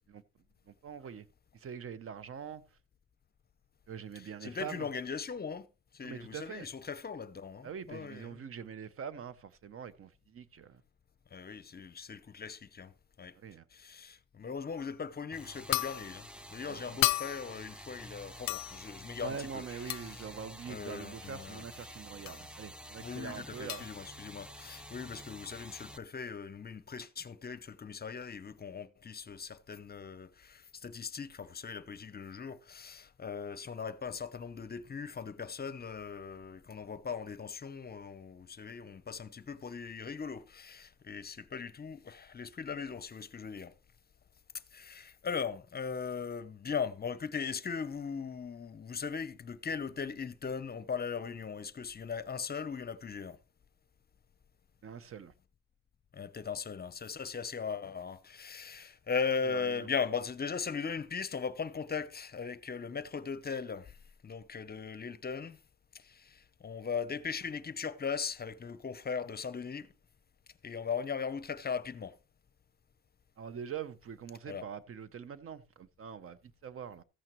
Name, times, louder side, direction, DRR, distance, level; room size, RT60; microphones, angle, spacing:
voice 1, 0.7-1.3 1.5-2.6 3.9-4.9 6.0-6.7 7.6-10.8 13.4-13.6 16.7-17.1 19.2-23.9 54.8-55.3 59.4-59.9 73.4-77.0, right 7 dB, 45° right, 0.8 m, -44 dB
voice 2, 4.2-5.7 5.9-8.4 11.3-12.9 13.2-13.3 13.7-20.3 20.7-21.6 23.0-43.7 44.7-53.4 56.1-64.0 64.2-65.6 65.9-69.9 70.6-72.1 74.5-74.6, left 6 dB, 30° left, 0.7 m, -39 dB
sound 1, 14.8-15.0 15.7-16.2 17.0-17.6 18.5-18.9 19.9-20.2 22.3-22.4 23.7-23.9, left 15 dB, 65° left, 0.5 m, -33 dB
sound 2, 15.3-26.0, equal, 5° right, 0.6 m, -49 dB
14.0 x 8.8 x 3.0 m
cardioid pair, 90°, 30 cm